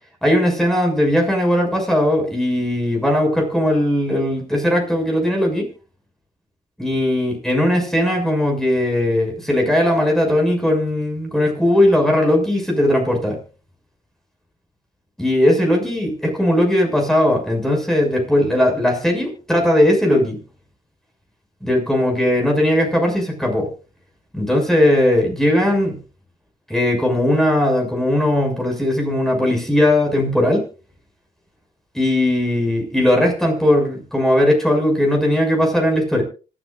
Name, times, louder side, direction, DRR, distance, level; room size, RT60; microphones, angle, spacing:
voice 1, 0.2-5.6 6.8-13.4 15.2-20.4 21.6-23.7 24.3-26.0 26.7-30.6 31.9-36.2, left 1 dB, 5° left, 1 dB, 6.6 m, -18 dB
26.0 x 10.5 x 2.6 m, 0.35 s
cardioid pair, 90°, 14 cm